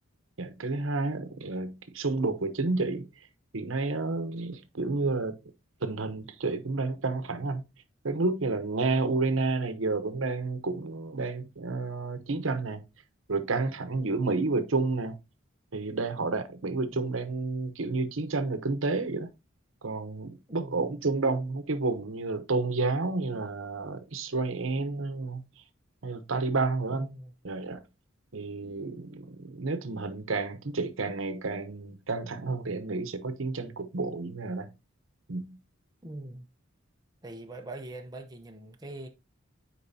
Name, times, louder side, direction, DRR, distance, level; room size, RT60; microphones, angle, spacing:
voice 1, 0.4-3.1 3.5-5.4 5.8-7.6 8.0-12.8 13.3-15.1 15.7-19.3 19.8-25.4 26.0-27.1 27.4-27.8 28.3-34.7 35.3-35.6, right 3 dB, 80° right, 0.9 m, -30 dB
voice 2, 16.9-17.3 20.5-21.0 26.9-27.3 36.0-36.5 37.2-39.1, right 2 dB, 20° right, 0.7 m, -43 dB
10.0 x 4.6 x 2.7 m
head